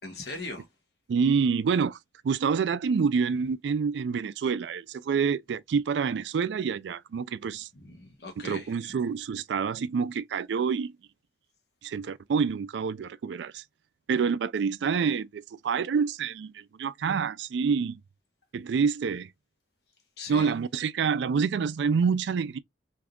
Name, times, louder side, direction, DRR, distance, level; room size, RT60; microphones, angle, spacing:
voice 1, 0.0-0.7 7.7-8.9 20.2-20.5, left 2 dB, 60° left, 1.2 m, -40 dB
voice 2, 1.1-2.0 2.2-7.7 8.4-10.9 11.8-13.6 14.1-18.0 18.5-19.3 20.3-22.6, right 6 dB, 70° right, 0.3 m, -27 dB
3.5 x 2.6 x 2.4 m
head